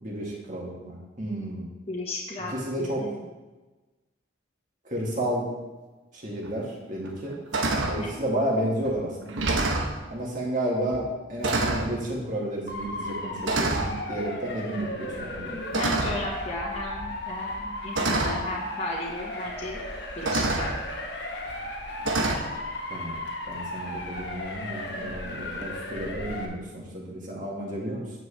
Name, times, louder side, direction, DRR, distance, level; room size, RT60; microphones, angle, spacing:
voice 1, 0.0-1.7 2.5-3.1 4.8-5.5 6.1-7.4 7.9-9.5 10.1-15.6 22.9-28.1, right 1 dB, 40° right, -3 dB, 2.1 m, -31 dB
voice 2, 1.9-3.1 8.0-8.1 15.5-19.8 20.2-20.7, left 1 dB, 30° left, -4 dB, 1.5 m, -34 dB
sound 1, 6.4-6.5 7.0-7.3 7.5-8.0 8.8-9.0 9.3-10.0 10.9-11.1 11.4-11.9 12.9-13.1 13.5-13.9 15.7-16.3 17.4-17.5 18.0-18.4 19.6-19.7 20.3-20.7 22.1-22.4, right 2 dB, 90° right, 1.0 m, -26 dB
Motor vehicle (road) / Siren, 12.7-26.5, left 1 dB, 65° left, 1.3 m, -35 dB
9.2 x 7.6 x 3.4 m, 1.2 s
head